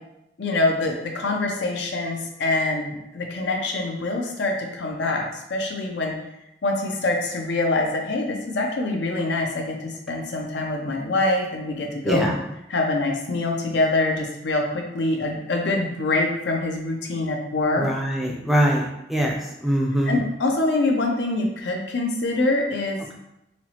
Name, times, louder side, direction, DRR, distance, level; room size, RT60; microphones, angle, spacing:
voice 1, 0.4-6.1 6.6-12.3 12.7-17.9 20.1-23.0, left 2 dB, 90° left, 1 dB, 0.6 m, -25 dB
voice 2, 12.0-12.4 17.8-20.2, equal, ahead, -1 dB, 0.4 m, -23 dB
4.2 x 2.0 x 2.9 m, 0.87 s
head